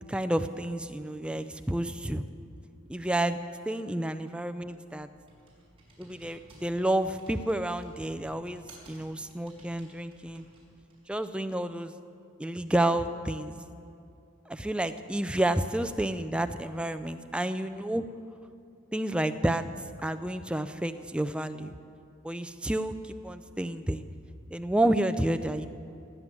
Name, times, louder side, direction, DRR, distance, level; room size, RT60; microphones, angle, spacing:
voice 1, 0.1-2.3 2.9-3.4 3.7-5.1 6.0-10.4 11.1-11.9 12.4-13.5 14.5-18.0 18.9-19.7 20.0-21.8 22.2-24.0 24.5-25.7, right 1 dB, 5° right, 10 dB, 0.4 m, -30 dB
Computer keyboard, 4.5-11.2, right 1 dB, 25° right, 4.3 m, -57 dB
18.0 x 9.5 x 7.5 m, 2.5 s
head